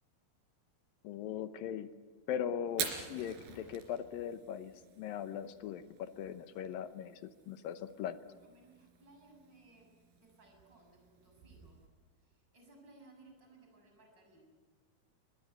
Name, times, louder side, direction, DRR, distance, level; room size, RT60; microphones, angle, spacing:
voice 1, 1.0-1.9 2.3-8.2, left 9 dB, 75° left, 11 dB, 2.5 m, -40 dB
Fire, 2.7-11.9, right 6 dB, 90° right, 5.0 m, -47 dB
voice 2, 8.3-11.8 12.2-14.4, right 2 dB, 25° right, 2 dB, 7.4 m, -61 dB
23.0 x 21.5 x 9.3 m, 1.5 s
omnidirectional pair, 4.4 m